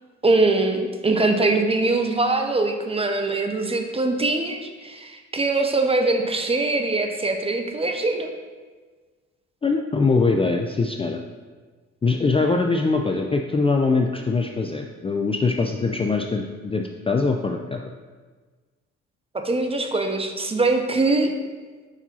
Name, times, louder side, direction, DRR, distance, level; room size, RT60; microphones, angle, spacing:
voice 1, 0.2-8.3 19.3-21.3, right 2 dB, 20° right, 5 dB, 0.7 m, -22 dB
voice 2, 9.6-11.2 12.0-17.8, left 3 dB, 20° left, 3 dB, 0.3 m, -22 dB
5.4 x 4.9 x 4.2 m, 1.4 s
cardioid pair, 90°, 30 cm